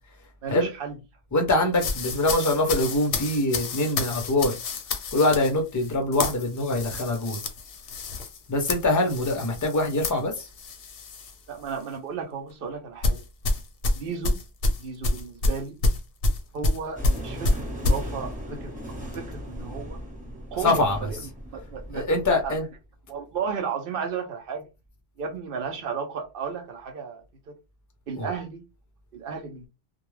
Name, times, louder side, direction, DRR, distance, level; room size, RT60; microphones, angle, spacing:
voice 1, 0.4-0.9 11.5-13.2 13.9-14.4 14.8-15.8 16.5-20.0 20.5-21.2 21.5-22.6 23.1-24.7 25.2-27.2 28.1-28.6 29.1-29.7, right 6 dB, 55° right, 0.7 m, -34 dB
voice 2, 1.3-4.6 5.1-7.4 8.5-10.5 20.6-21.1 21.9-22.6 28.2-28.3, left 2 dB, 25° left, 0.4 m, -24 dB
sound 1, 1.8-11.4 11.7-12.0 13.0-18.0, left 2 dB, 60° left, 0.7 m, -28 dB
sound 2, 17.0-22.6, equal, 5° right, 0.9 m, -37 dB
2.3 x 2.2 x 3.1 m
omnidirectional pair, 1.3 m